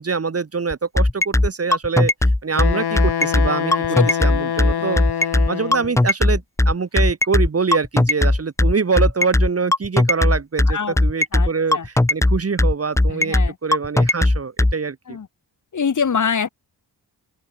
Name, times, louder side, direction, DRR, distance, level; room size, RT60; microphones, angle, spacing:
voice 1, 0.0-2.1 2.4-3.7 4.2-5.0 5.5-15.2, right 5 dB, 35° right, 1.7 m, -24 dB
sound 1, 0.7-14.7, left 1 dB, 5° left, 0.7 m, -16 dB
Wind instrument woodwind instrument, 2.5-6.0, left 8 dB, 70° left, 2.0 m, -25 dB
voice 2, 11.3-11.9 13.1-13.6 15.1-15.3 15.7-16.5, left 6 dB, 45° left, 1.8 m, -23 dB
open air
wide cardioid pair, 120°, 41 cm